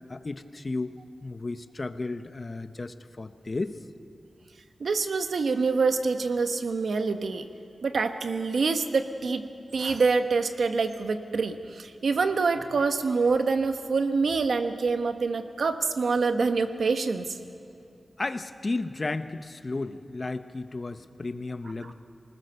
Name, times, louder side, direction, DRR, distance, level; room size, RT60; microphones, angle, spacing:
voice 1, 0.1-0.9 1.2-3.8 18.2-21.9, left 3 dB, 35° left, 10 dB, 0.8 m, -33 dB
voice 2, 4.8-7.5 7.8-9.5 9.7-17.3 21.8-21.9, right 4 dB, 75° right, 8 dB, 1.1 m, -26 dB
25.0 x 19.5 x 6.8 m, 2.5 s
wide cardioid pair, 105°, 0 cm